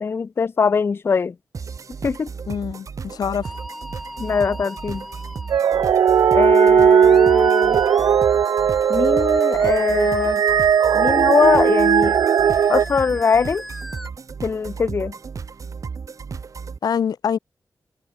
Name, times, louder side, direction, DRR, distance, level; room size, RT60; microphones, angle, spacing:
voice 1, 0.0-1.3 2.0-2.3 4.2-5.1 6.3-7.8 8.9-10.4 10.9-12.1 12.7-13.6 14.4-15.1, left 5 dB, 40° left, 0.3 m, -21 dB
sound 1, 1.5-16.8, right 5 dB, 55° right, 1.8 m, -34 dB
voice 2, 2.5-3.5 16.8-17.4, left 7 dB, 85° left, 0.9 m, -25 dB
Musical instrument, 3.4-14.1, equal, ahead, 5.0 m, -37 dB
sound 2, 5.5-12.9, right 8 dB, 80° right, 0.4 m, -17 dB
wide cardioid pair, 110°, 6 cm